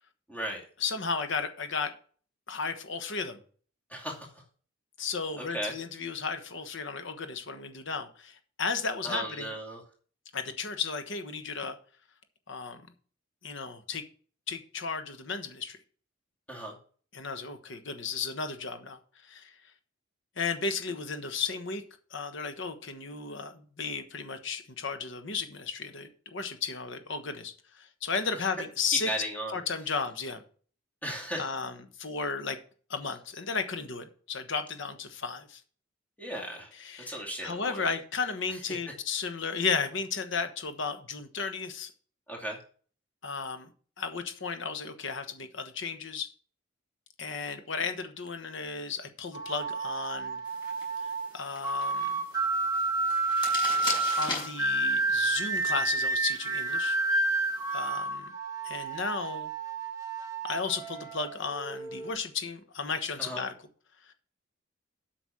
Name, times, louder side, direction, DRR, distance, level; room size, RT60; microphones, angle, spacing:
voice 1, 0.3-0.6 3.9-4.3 5.4-5.7 9.0-9.8 16.5-16.7 28.9-29.6 31.0-31.5 36.2-36.7 37.1-38.0 38.5-38.6 42.3-42.6 63.2-63.4, equal, 10° left, -2 dB, 2.5 m, -35 dB
voice 2, 0.8-1.9 2.5-3.4 5.0-9.5 10.3-11.8 12.5-12.8 13.4-14.0 14.5-15.8 17.1-19.5 20.4-21.8 22.1-29.1 29.5-30.4 31.4-32.6 32.9-35.6 36.7-41.9 43.2-43.7 44.0-46.3 47.2-50.4 51.3-52.2 54.1-57.0 57.7-58.3 58.6-59.5 60.4-63.5, left 5 dB, 60° left, 8 dB, 1.2 m, -34 dB
sound 1, 49.3-62.1, right 3 dB, 15° right, 2.3 m, -30 dB
sound 2, 50.4-57.9, left 3 dB, 25° left, 4.3 m, -41 dB
8.4 x 6.1 x 6.2 m, 0.43 s
head